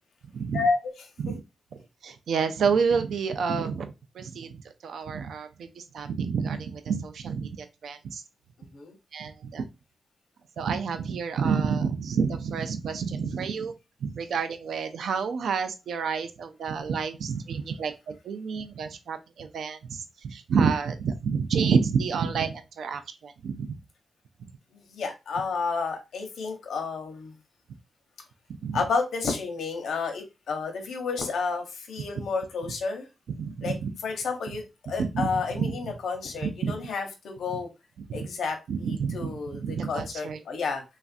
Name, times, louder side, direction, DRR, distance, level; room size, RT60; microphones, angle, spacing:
voice 1, 0.3-0.6 1.2-1.4 2.0-4.6 4.8-8.2 9.1-9.7 10.6-13.7 14.0-23.7 28.6-28.8 33.4-33.9 35.0-35.3 35.5-35.7 36.6-36.7 38.1-38.2 38.7-40.4, right 6 dB, 85° right, 9 dB, 0.4 m, -29 dB
voice 2, 8.6-8.9 24.7-27.3 28.7-33.1 33.6-33.8 34.0-37.7 38.1-40.8, left 4 dB, 85° left, 4 dB, 0.8 m, -31 dB
3.2 x 2.4 x 2.4 m, 0.25 s
wide cardioid pair, 145°, 0 cm